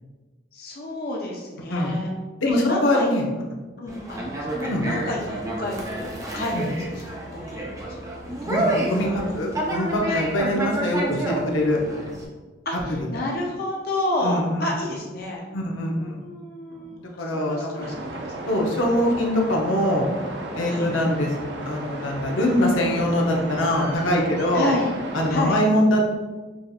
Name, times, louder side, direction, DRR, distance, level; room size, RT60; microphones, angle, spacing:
voice 1, 0.5-2.1 2.5-3.3 3.8-8.0 9.0-9.2 10.1-10.2 12.7-15.4 15.8-17.0 17.4-18.2 20.7-20.9 24.5-24.9 25.3-25.6, left 1 dB, 50° left, -1 dB, 0.6 m, -30 dB
voice 2, 2.4-3.2 4.7-4.8 6.5-6.7 8.4-11.8 14.2-14.7 15.5-16.2 16.8-17.9 18.5-20.1 20.5-21.3 21.6-24.7 25.1-26.0, left 1 dB, 90° left, -1 dB, 0.7 m, -23 dB
Conversation, 3.9-12.2, right 1 dB, 15° right, 0.5 m, -29 dB
sound 1, 17.8-25.3, right 2 dB, 60° right, 0.6 m, -34 dB
6.1 x 2.6 x 2.4 m, 1.3 s
head